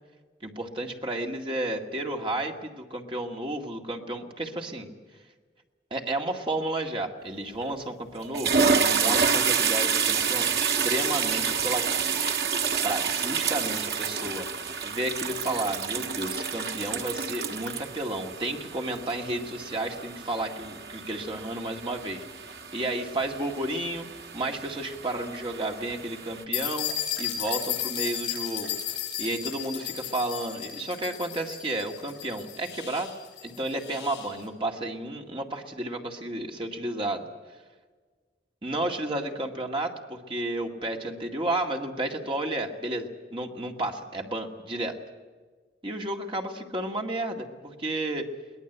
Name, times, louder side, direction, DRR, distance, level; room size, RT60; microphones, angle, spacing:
voice 1, 0.4-4.9 5.9-12.3 12.8-14.5 14.8-24.1 24.3-26.9 27.2-28.8 29.2-33.1 33.4-37.2 38.6-45.0 45.8-48.3, right 1 dB, 30° right, 2 dB, 2.1 m, -32 dB
sound 1, 7.6-7.8 8.2-26.4, right 6 dB, 60° right, 1.6 m, -29 dB
sound 2, 26.5-34.3, left 10 dB, 85° left, 7.2 m, -34 dB
22.5 x 18.5 x 8.1 m, 1.4 s
head